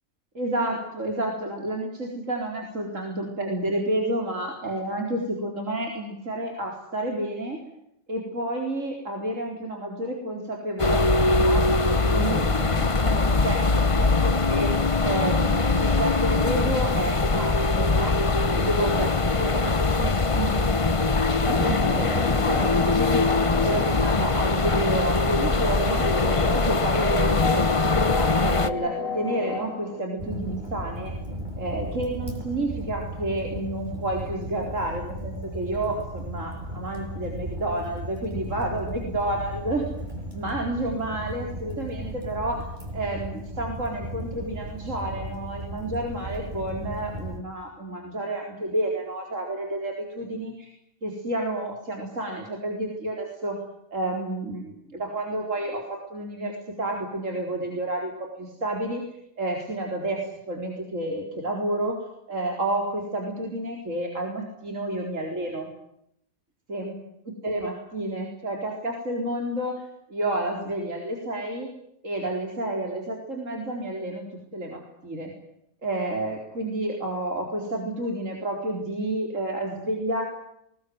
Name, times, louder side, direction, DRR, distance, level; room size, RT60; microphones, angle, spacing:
voice 1, 0.3-7.6 8.1-11.6 12.0-14.7 15.0-18.1 18.5-20.7 21.6-23.3 23.6-26.0 26.4-27.7 27.9-31.1 31.6-39.9 40.3-42.7 42.9-50.7 51.0-53.6 53.9-59.0 59.4-60.2 60.5-62.0 62.3-65.7 66.7-66.9 67.2-69.8 70.1-71.7 72.0-74.2 74.5-75.3 75.8-80.2, right 1 dB, 70° right, 1 dB, 4.7 m, -30 dB
sound 1, 10.8-28.7, left 3 dB, 25° left, 1.1 m, -22 dB
sound 2, 21.3-30.0, left 3 dB, 70° left, 2.6 m, -33 dB
Fire, 30.2-47.4, equal, 35° right, 6.9 m, -36 dB
23.5 x 20.5 x 9.5 m, 0.77 s
omnidirectional pair, 1.4 m